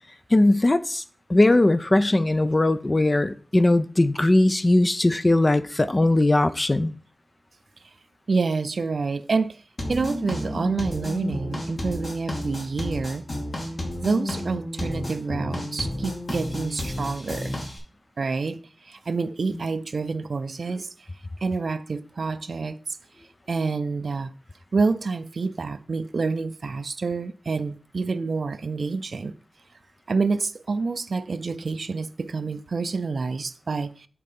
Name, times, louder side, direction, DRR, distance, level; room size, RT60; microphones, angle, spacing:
voice 1, 0.3-1.0 1.3-6.9, left 2 dB, 30° left, 0.5 m, -19 dB
voice 2, 8.3-9.6 9.9-13.3 14.0-17.6 18.2-20.9 21.4-22.8 23.5-24.3 24.7-29.3 30.1-34.1, right 4 dB, 70° right, 0.5 m, -27 dB
sound 1, 9.8-17.8, left 1 dB, 55° left, 2.6 m, -31 dB
8.5 x 4.3 x 5.3 m
wide cardioid pair, 100°, 0 cm